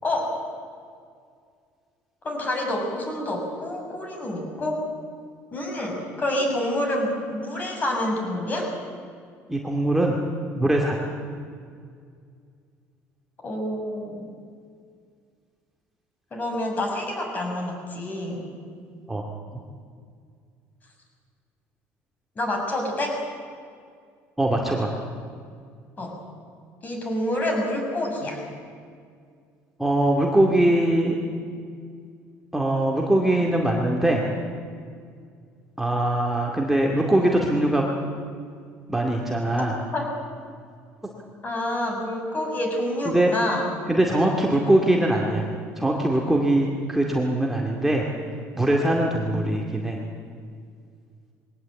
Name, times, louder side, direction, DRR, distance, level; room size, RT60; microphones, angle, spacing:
voice 1, 0.0-0.4 2.2-4.8 5.5-8.7 13.4-14.3 16.3-18.5 22.4-23.2 26.0-26.2 26.8-28.4 39.9-40.1 41.4-43.6, left 1 dB, 30° left, 1 dB, 6.2 m, -27 dB
voice 2, 9.5-10.2 10.6-11.1 19.1-19.3 24.4-24.9 29.8-31.2 32.5-34.2 35.8-37.9 38.9-39.7 43.0-43.3 43.9-45.4 45.8-48.0 48.5-50.0, right 1 dB, 5° right, -1 dB, 2.3 m, -22 dB
21.5 x 17.5 x 8.5 m, 2.2 s
cardioid pair, 120°, 6 cm